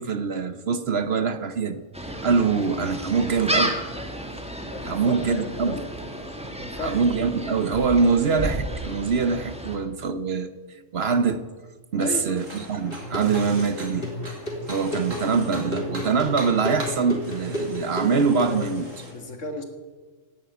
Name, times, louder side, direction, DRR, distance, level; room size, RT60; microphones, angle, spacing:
voice 1, 0.0-1.8 2.2-3.8 4.8-5.8 6.8-11.5 11.9-14.1 14.7-19.1, right 5 dB, 55° right, 1.0 m, -24 dB
Gull seagull, 1.9-9.8, equal, 5° right, 1.8 m, -32 dB
voice 2, 4.7-5.9 6.6-7.0 12.0-12.4 19.1-19.6, left 2 dB, 65° left, 2.3 m, -34 dB
sound 1, 12.3-19.1, right 1 dB, 70° right, 3.5 m, -39 dB
sound 2, 12.9-18.8, left 1 dB, 40° left, 3.8 m, -32 dB
16.5 x 9.3 x 9.1 m
omnidirectional pair, 1.4 m